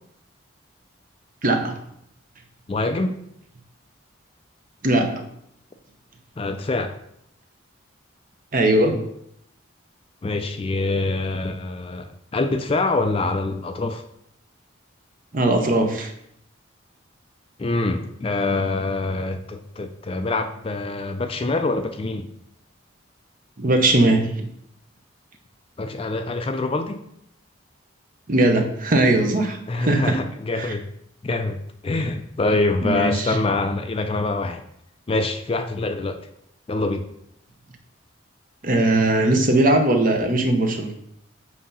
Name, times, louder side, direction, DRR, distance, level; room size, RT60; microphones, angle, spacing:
voice 1, 1.4-1.8 4.8-5.3 8.5-9.1 15.3-16.1 23.6-24.5 28.3-30.2 30.5-30.7 32.8-33.4 38.6-40.9, right 2 dB, 40° right, 5 dB, 0.8 m, -20 dB
voice 2, 2.7-3.2 6.4-7.0 10.2-14.0 17.6-22.3 25.8-27.0 29.7-30.8 31.2-34.6 35.1-36.2 36.7-37.1, left 2 dB, 25° left, 7 dB, 0.3 m, -25 dB
7.7 x 2.8 x 5.4 m, 0.74 s
head